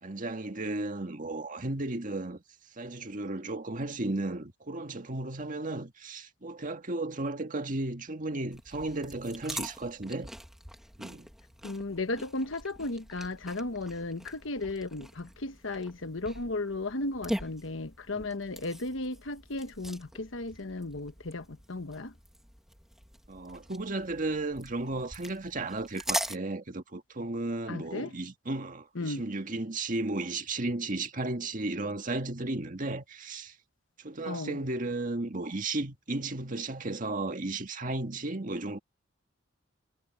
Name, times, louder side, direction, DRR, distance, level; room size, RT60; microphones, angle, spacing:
voice 1, 0.0-2.4 2.8-10.3 11.0-11.3 18.1-18.3 23.3-33.6 34.0-38.8, right 2 dB, 45° right, 1.8 m, -34 dB
sound 1, 8.5-26.4, equal, ahead, 2.2 m, -42 dB
voice 2, 11.6-22.1 27.7-28.1 28.9-29.2 34.3-34.6, left 2 dB, 75° left, 1.3 m, -35 dB
head